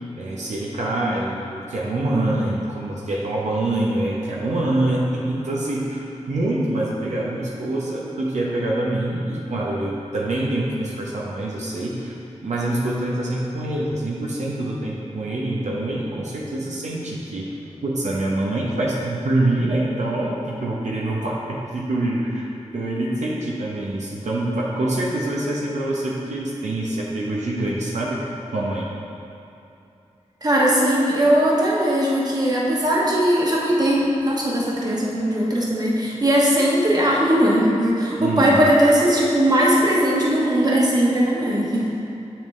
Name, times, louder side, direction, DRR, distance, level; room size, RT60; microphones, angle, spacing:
voice 1, 0.2-12.1 12.4-17.5 17.8-22.5 22.7-28.9 38.2-38.6, right 1 dB, 80° right, -5 dB, 0.9 m, -25 dB
voice 2, 30.4-41.8, equal, 35° right, -5 dB, 1.2 m, -19 dB
7.1 x 5.8 x 3.2 m, 2.7 s
wide cardioid pair, 90°, 12 cm